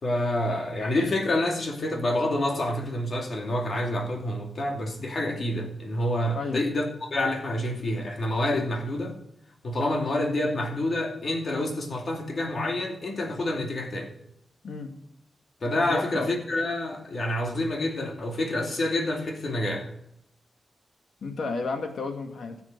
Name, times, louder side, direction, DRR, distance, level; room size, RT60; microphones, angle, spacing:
voice 1, 0.0-9.1 9.6-14.1 15.6-19.9, left 1 dB, 50° left, 2 dB, 2.5 m, -28 dB
voice 2, 15.9-16.3 21.2-22.6, left 3 dB, 75° left, 5 dB, 1.8 m, -32 dB
16.0 x 7.1 x 5.1 m, 0.74 s
wide cardioid pair, 130°, 0 cm